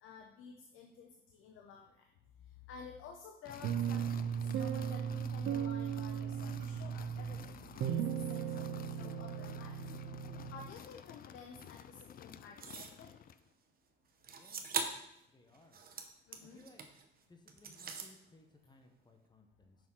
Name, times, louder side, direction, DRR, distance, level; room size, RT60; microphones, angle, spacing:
voice 1, 0.0-2.1 2.7-4.0 4.4-7.4 7.8-8.0 8.3-9.8 10.5-13.1 16.3-16.6, left 5 dB, 85° left, 3 dB, 0.8 m, -52 dB
sound 1, 3.4-13.5, left 9 dB, 50° left, 0.4 m, -52 dB
sound 2, 3.6-10.7, right 8 dB, 75° right, 0.4 m, -37 dB
sound 3, 12.6-13.0 14.2-15.1 15.5-17.0 17.5-18.1, right 5 dB, 50° right, 0.9 m, -41 dB
voice 2, 14.3-14.7 15.3-15.8 16.4-16.8 17.3-19.8, left 2 dB, 20° left, 4 dB, 1.1 m, -62 dB
6.1 x 4.4 x 5.6 m, 0.78 s
cardioid pair, 90°, 20 cm